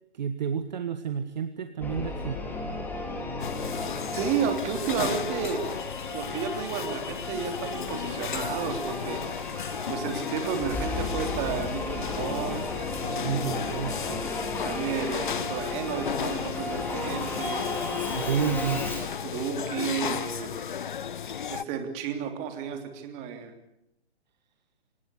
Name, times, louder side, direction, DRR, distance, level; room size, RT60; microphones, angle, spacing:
voice 1, 0.1-2.4 13.2-14.2 18.1-18.8, right 8 dB, 40° right, 9 dB, 1.6 m, -30 dB
Singing / Musical instrument, 1.8-19.2, left 2 dB, 5° left, 3.5 m, -34 dB
sound 1, 3.4-21.6, left 8 dB, 50° left, 0.9 m, -34 dB
voice 2, 4.1-5.6 6.1-9.2 9.9-12.7 14.6-17.6 19.2-20.5 21.5-23.5, right 7 dB, 20° right, 6 dB, 3.1 m, -32 dB
25.5 x 19.5 x 8.2 m, 0.80 s
figure-of-eight pair, 135°, 32 cm